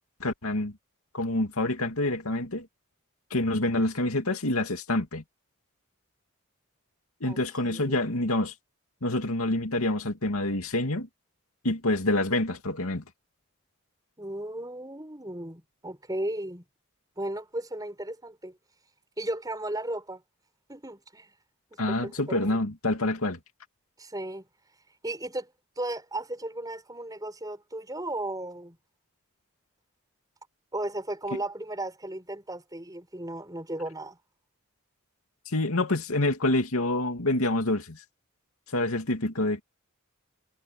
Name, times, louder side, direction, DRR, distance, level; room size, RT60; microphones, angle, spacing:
voice 1, 0.2-0.7 1.1-2.7 3.3-5.2 7.2-8.5 9.0-11.1 11.6-13.0 21.8-23.4 35.5-38.0 38.7-39.6, left 2 dB, 90° left, 2.5 m, -27 dB
voice 2, 7.2-8.3 14.2-16.6 17.2-18.6 19.2-20.2 20.7-21.3 21.9-22.6 24.0-24.4 25.0-25.5 25.8-28.8 30.7-34.2, right 1 dB, 15° right, 6.3 m, -35 dB
head